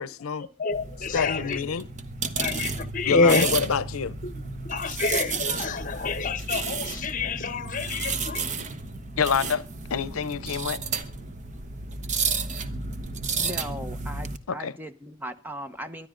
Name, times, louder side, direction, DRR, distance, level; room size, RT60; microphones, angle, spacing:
voice 1, 0.0-0.5 1.1-1.9 3.1-4.2 4.9-5.0 9.2-9.6 9.9-10.8 14.5-14.7, left 6 dB, 85° left, 0.6 m, -27 dB
voice 2, 0.6-1.7 2.4-3.5 4.2-4.3 4.6-8.5, left 4 dB, 40° left, 1.1 m, -27 dB
sound 1, 0.7-14.4, right 4 dB, 35° right, 1.1 m, -32 dB
voice 3, 13.3-16.1, right 1 dB, 10° right, 0.9 m, -38 dB
23.5 x 11.0 x 3.8 m
head